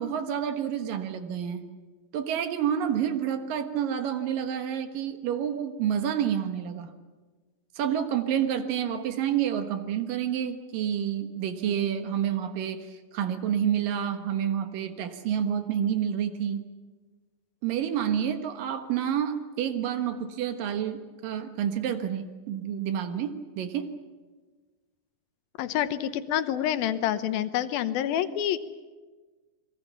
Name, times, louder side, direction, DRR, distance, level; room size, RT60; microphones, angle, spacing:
voice 1, 0.0-1.6 2.1-6.9 7.8-16.7 17.6-23.9, right 9 dB, 70° right, 8 dB, 2.9 m, -29 dB
voice 2, 25.6-28.6, left 11 dB, 80° left, 12 dB, 2.7 m, -27 dB
29.0 x 21.5 x 7.3 m, 1.3 s
omnidirectional pair, 4.3 m